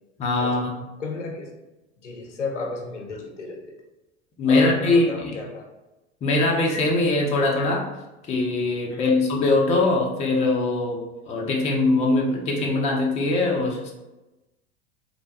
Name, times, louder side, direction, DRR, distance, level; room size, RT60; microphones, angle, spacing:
voice 1, 0.2-0.8 4.4-5.3 6.2-7.9 8.3-13.9, left 2 dB, 20° left, -1 dB, 0.5 m, -22 dB
voice 2, 1.0-1.5 2.0-3.8 4.5-5.7 8.9-9.2, left 3 dB, 80° left, 1 dB, 0.6 m, -32 dB
3.1 x 2.2 x 2.7 m, 1.0 s
figure-of-eight pair, 80°, 35 cm